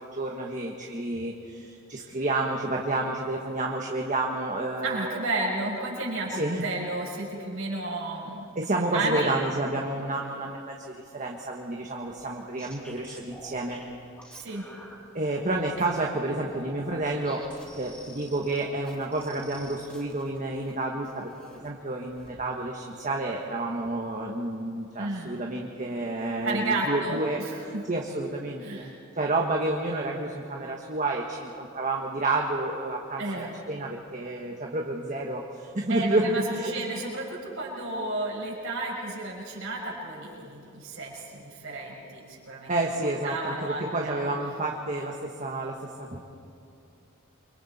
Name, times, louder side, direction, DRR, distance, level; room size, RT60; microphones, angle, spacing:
voice 1, 0.0-5.3 6.3-6.6 8.5-13.8 15.1-17.5 17.8-27.4 27.9-28.9 29.2-36.7 42.7-46.2, right 2 dB, 40° right, 0 dB, 1.4 m, -30 dB
voice 2, 4.8-8.4 8.9-9.4 14.4-14.6 25.0-25.3 26.4-27.8 28.6-29.0 33.2-33.6 35.9-42.7 43.2-44.3, right 2 dB, 80° right, -3 dB, 6.2 m, -32 dB
sound 1, 12.1-15.0 15.4-16.1 16.5-20.7 21.0-21.7 22.1-22.4, equal, 5° left, 4.5 m, -48 dB
28.5 x 24.5 x 4.3 m, 2.6 s
head